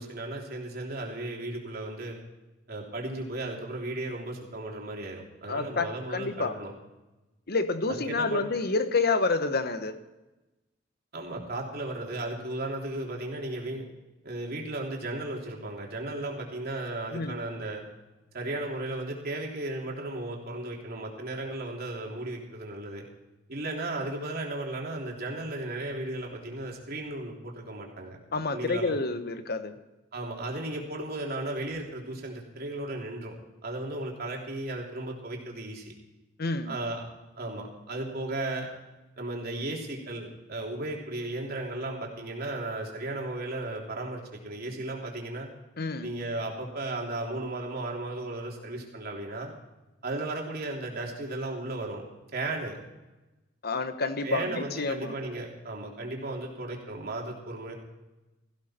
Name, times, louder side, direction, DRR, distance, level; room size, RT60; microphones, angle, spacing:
voice 1, 0.0-2.2 2.7-6.7 7.9-8.4 11.1-13.8 14.2-17.8 18.3-23.0 23.5-28.2 28.5-29.0 30.1-33.3 33.6-35.9 36.6-37.0 37.4-38.7 39.2-45.5 46.0-49.5 50.0-52.0 52.3-52.8 54.2-57.7, right 2 dB, 55° right, -1 dB, 3.2 m, -35 dB
voice 2, 5.5-6.5 7.5-9.9 17.1-17.4 28.3-29.7 36.4-36.7 45.8-46.1 53.6-55.1, left 3 dB, 55° left, 9 dB, 1.2 m, -28 dB
17.5 x 15.0 x 4.4 m, 1.1 s
head